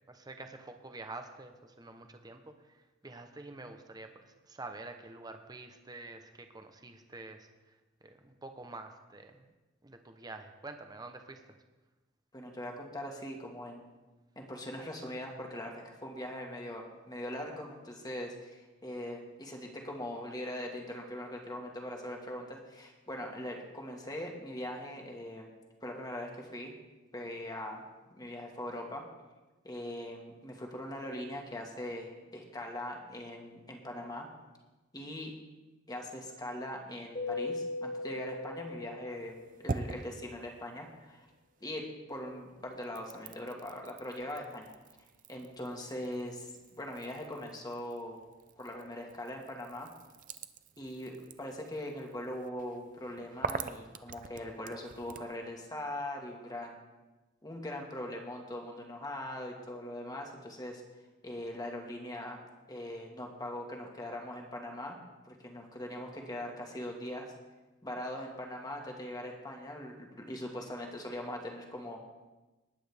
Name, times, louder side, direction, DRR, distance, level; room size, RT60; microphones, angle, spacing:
voice 1, 0.1-7.7 8.0-9.4 9.8-11.6, right 2 dB, 20° right, 6 dB, 0.9 m, -47 dB
voice 2, 12.3-13.8 14.4-25.5 25.8-26.7 27.1-27.8 28.1-29.0 29.6-34.3 34.9-35.3 35.9-41.3 41.6-44.7 45.3-48.2 48.6-49.9 50.8-56.8 57.4-60.8 61.2-62.4 62.7-65.0 65.2-67.3 67.8-72.0, left 1 dB, 20° left, 1 dB, 1.7 m, -41 dB
Keyboard (musical), 37.1-39.7, left 3 dB, 45° left, 3.3 m, -38 dB
sound 1, 39.1-41.8 42.1-55.4, right 4 dB, 45° right, 0.5 m, -45 dB
19.5 x 8.9 x 3.5 m, 1.1 s
head